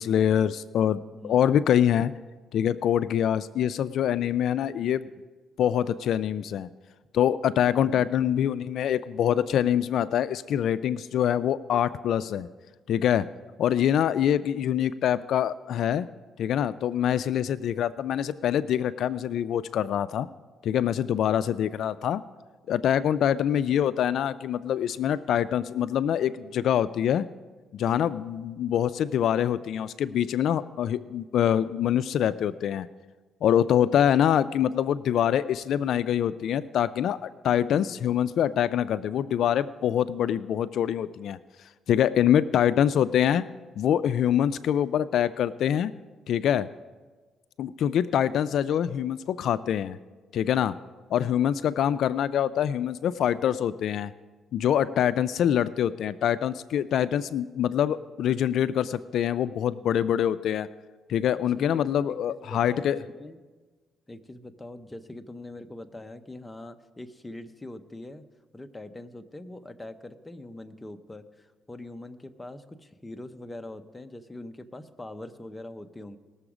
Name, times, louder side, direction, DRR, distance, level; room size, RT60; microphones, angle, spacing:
voice 1, 0.0-2.1 2.5-5.1 5.6-6.7 7.1-12.5 12.9-13.3 13.6-16.1 16.4-20.3 20.6-22.2 22.7-27.3 27.7-32.9 33.4-41.4 41.9-43.4 43.8-45.9 46.3-46.7 47.6-50.0 50.3-50.7 51.1-54.1 54.5-60.7 61.1-63.0, left 10 dB, 70° left, 15 dB, 0.3 m, -25 dB
voice 2, 1.1-1.5 61.6-63.4 64.1-68.2 68.5-76.2, left 1 dB, 15° left, 8 dB, 0.7 m, -43 dB
19.0 x 7.0 x 4.9 m, 1.3 s
cardioid pair, 110°, 0 cm